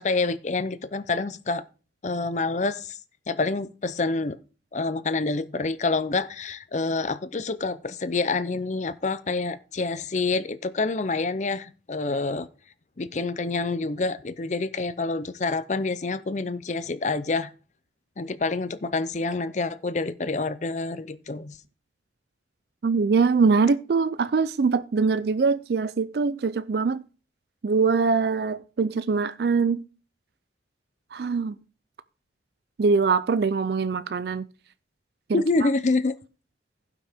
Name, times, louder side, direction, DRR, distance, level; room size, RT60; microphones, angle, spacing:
voice 1, 0.0-1.6 2.0-3.0 3.3-4.4 4.7-12.5 13.0-17.5 18.2-21.6 35.3-36.2, left 3 dB, 40° left, 0.5 m, -27 dB
voice 2, 22.8-27.0 27.6-29.8 31.1-31.6 32.8-34.5 35.3-35.7, right 4 dB, 55° right, 0.4 m, -23 dB
16.0 x 6.0 x 3.5 m
head